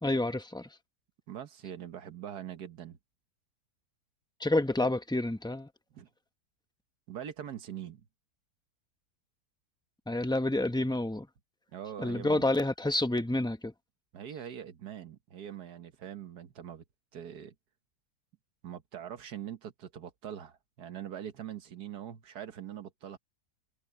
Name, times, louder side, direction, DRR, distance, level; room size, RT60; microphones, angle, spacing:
voice 1, 0.0-0.7 4.4-5.7 10.1-11.3 12.0-13.7, left 2 dB, 5° left, 0.6 m, -29 dB
voice 2, 1.3-3.0 5.9-6.1 7.1-8.1 11.7-12.5 14.1-16.8 17.1-17.5 18.6-23.2, right 10 dB, 80° right, 1.7 m, -43 dB
omnidirectional pair, 1.7 m